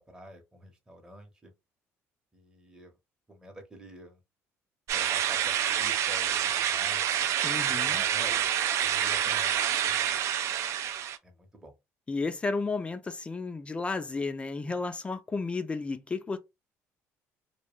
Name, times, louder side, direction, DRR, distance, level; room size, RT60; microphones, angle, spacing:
voice 1, 0.0-1.5 2.3-3.0 3.3-4.2 4.9-7.0 7.6-8.5 8.8-10.1 11.2-11.7, right 1 dB, 10° right, 0.8 m, -48 dB
sound 1, 4.9-11.2, right 10 dB, 60° right, 0.3 m, -27 dB
voice 2, 7.4-8.0 12.1-16.4, left 3 dB, 20° left, 0.3 m, -32 dB
2.2 x 2.1 x 3.1 m
cardioid pair, 105°, 6 cm